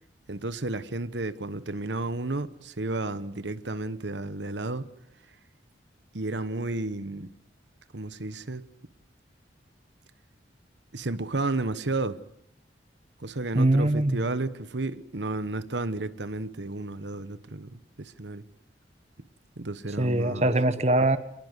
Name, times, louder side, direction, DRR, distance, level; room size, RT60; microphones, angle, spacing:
voice 1, 0.3-4.9 6.1-7.3 7.9-8.7 10.9-12.2 13.2-18.4 19.6-20.5, right 2 dB, 75° right, 1.2 m, -32 dB
voice 2, 13.5-14.2 20.0-21.2, right 1 dB, 35° right, 1.2 m, -22 dB
26.5 x 20.5 x 8.2 m
head